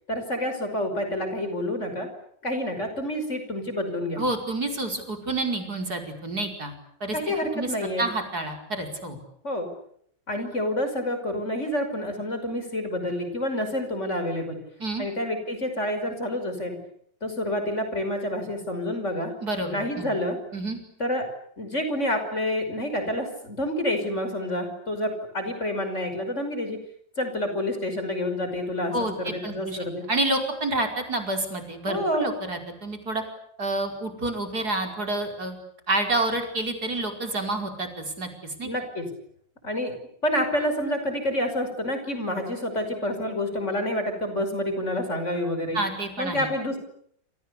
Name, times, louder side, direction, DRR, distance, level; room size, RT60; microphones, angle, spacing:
voice 1, 0.1-2.1 2.4-4.2 7.1-8.0 9.4-9.7 10.3-14.6 15.0-16.8 17.2-19.3 19.6-20.4 21.0-21.2 21.6-26.8 27.2-30.0 31.9-32.3 38.6-39.1 39.6-39.9 40.2-45.8 46.2-46.8, left 1 dB, 40° left, 7 dB, 6.0 m, -28 dB
voice 2, 4.2-6.7 7.0-7.2 7.5-7.7 8.0-9.2 14.8-15.1 19.4-20.1 20.5-20.8 28.9-29.8 30.1-33.2 33.6-35.6 35.9-38.7 45.7-46.5, right 2 dB, 55° right, 4 dB, 5.6 m, -29 dB
29.0 x 28.0 x 6.9 m, 0.67 s
omnidirectional pair, 2.0 m